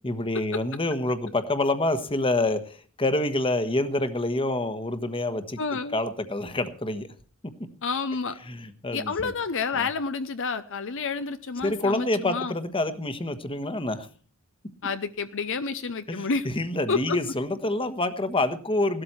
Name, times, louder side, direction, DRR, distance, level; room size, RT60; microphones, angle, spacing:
voice 1, 0.0-5.6 5.9-7.1 8.5-9.3 9.8-9.9 11.6-14.1 16.1-19.0, left 2 dB, 25° left, 10 dB, 1.3 m, -27 dB
voice 2, 5.6-6.0 7.8-8.4 8.9-12.5 14.8-16.5 16.9-17.2, left 4 dB, 60° left, 10 dB, 0.8 m, -29 dB
17.0 x 13.0 x 4.4 m, 0.39 s
head